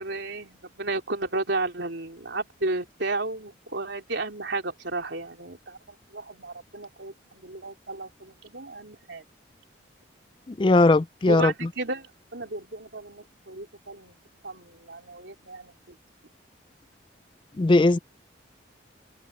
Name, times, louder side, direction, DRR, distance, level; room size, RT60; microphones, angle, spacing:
voice 1, 0.0-9.2 11.3-14.2 14.4-16.0, right 2 dB, 70° right, 3.4 m, -33 dB
voice 2, 10.5-11.5 17.6-18.0, left 2 dB, 25° left, 0.4 m, -19 dB
head